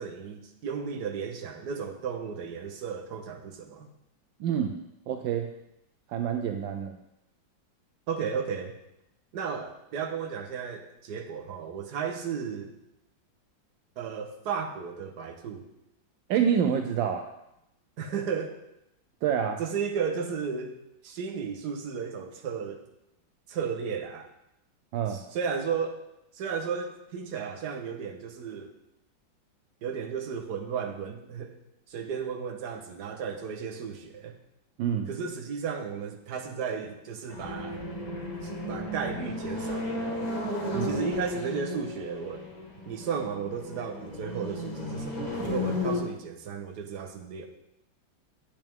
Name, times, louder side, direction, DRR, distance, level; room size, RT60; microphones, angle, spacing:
voice 1, 0.0-3.9 8.1-8.8 9.3-12.7 14.0-15.7 18.0-18.6 19.6-20.8 21.0-22.8 23.5-24.3 25.1-26.0 26.3-28.7 29.8-31.5 31.9-34.4 35.1-37.8 38.4-40.3 40.8-42.4 42.9-47.5, right 6 dB, 60° right, 4 dB, 1.5 m, -34 dB
voice 2, 4.4-4.7 5.1-5.5 6.1-7.0 16.3-17.3 19.2-19.6 24.9-25.2 34.8-35.1 40.7-41.0, right 8 dB, 80° right, 5 dB, 1.3 m, -27 dB
sound 1, 37.3-46.0, left 1 dB, 25° left, 1.8 m, -34 dB
10.0 x 8.6 x 3.5 m, 0.85 s
omnidirectional pair, 2.1 m